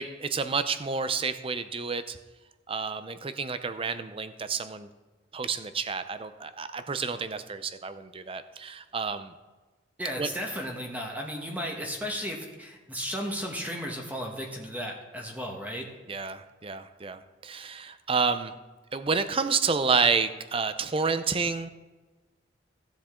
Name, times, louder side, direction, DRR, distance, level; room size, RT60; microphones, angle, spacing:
voice 1, 0.0-2.2 2.7-4.9 5.3-9.3 10.2-10.3 16.1-18.5 18.9-21.7, right 5 dB, 30° right, 11 dB, 0.6 m, -29 dB
voice 2, 10.0-15.9, equal, 10° right, 1 dB, 1.3 m, -34 dB
16.0 x 7.3 x 3.7 m, 1.2 s
head